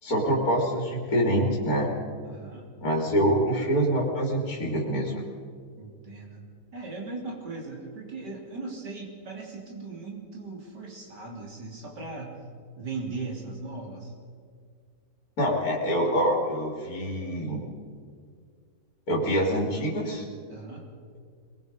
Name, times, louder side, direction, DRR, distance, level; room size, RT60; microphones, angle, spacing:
voice 1, 0.0-1.9 2.8-5.2 15.4-17.6 19.1-20.2, equal, 55° left, -2 dB, 3.4 m, -25 dB
voice 2, 2.2-2.7 5.8-6.4 6.7-12.4 12.8-14.1 20.5-20.9, right 3 dB, 75° right, -1 dB, 4.1 m, -38 dB
22.5 x 21.5 x 5.4 m, 2.1 s
omnidirectional pair, 1.8 m